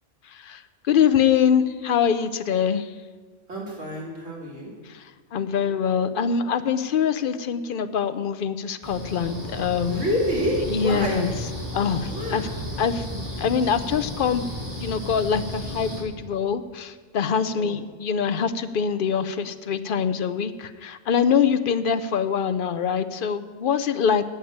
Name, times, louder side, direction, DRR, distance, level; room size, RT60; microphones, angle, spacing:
voice 1, 0.2-2.9 4.9-10.1 10.7-11.3 11.7-12.5 12.8-13.0 13.4-14.5 14.8-24.2, left 7 dB, 55° left, 11 dB, 0.7 m, -24 dB
voice 2, 3.5-4.7 9.9-11.2 12.1-12.4 17.5-17.7, equal, 85° right, -3 dB, 3.2 m, -28 dB
sound 1, 8.8-16.0, left 1 dB, 40° right, 2.9 m, -33 dB
11.0 x 7.1 x 8.7 m, 1.4 s
omnidirectional pair, 1.2 m